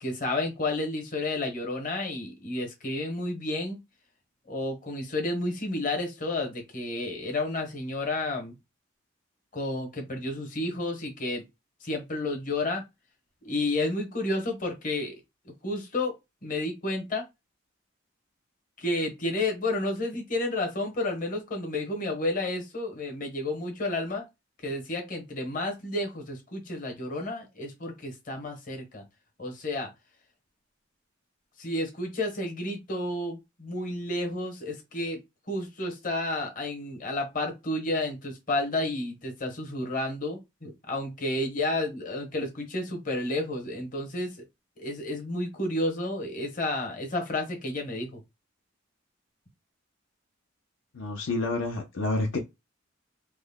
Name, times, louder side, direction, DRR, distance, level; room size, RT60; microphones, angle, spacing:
voice 1, 0.0-3.8 4.5-8.5 9.5-11.4 11.8-12.8 13.4-15.1 15.4-16.2 16.4-17.2 18.8-24.3 24.6-29.0 29.4-29.9 31.6-35.2 35.5-44.4 44.8-48.2, left 2 dB, 40° left, 1.0 m, -31 dB
voice 2, 50.9-52.4, left 2 dB, 75° left, 0.6 m, -29 dB
3.2 x 2.1 x 3.5 m
head